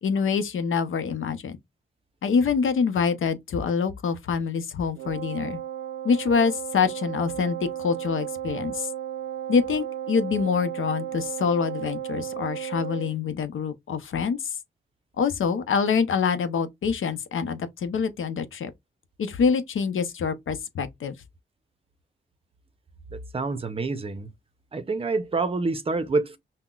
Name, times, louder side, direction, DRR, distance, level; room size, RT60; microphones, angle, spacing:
voice 1, 0.0-1.6 2.2-5.6 6.0-8.9 9.5-14.5 15.2-18.7 19.2-21.1, left 6 dB, 85° left, 0.7 m, -25 dB
Wind instrument woodwind instrument, 5.0-13.2, right 10 dB, 80° right, 0.5 m, -34 dB
voice 2, 23.1-24.3 24.7-26.4, right 3 dB, 30° right, 0.5 m, -27 dB
5.6 x 2.1 x 2.3 m
wide cardioid pair, 135°, 20 cm